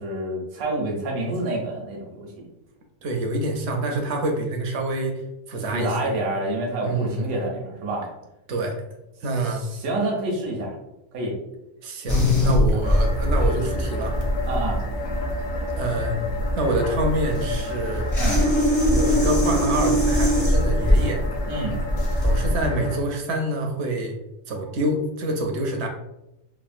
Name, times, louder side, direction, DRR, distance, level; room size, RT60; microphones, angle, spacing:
voice 1, 0.0-2.5 5.7-8.1 9.4-10.7 11.1-11.4 12.7-12.8 14.4-14.8 18.1-18.4 21.5-21.7, right 2 dB, 85° right, -1 dB, 1.1 m, -28 dB
voice 2, 3.0-5.2 5.5-6.1 6.8-7.3 8.5-8.8 9.2-9.6 11.8-14.2 15.8-16.2 16.6-18.1 18.8-21.2 22.2-24.2 24.5-25.9, right 1 dB, 65° right, 3 dB, 0.7 m, -26 dB
sound 1, 12.1-22.7, left 1 dB, 25° left, 0.4 m, -21 dB
sound 2, 12.8-23.0, equal, 65° left, 0.8 m, -31 dB
3.4 x 2.0 x 2.4 m, 0.89 s
omnidirectional pair, 1.5 m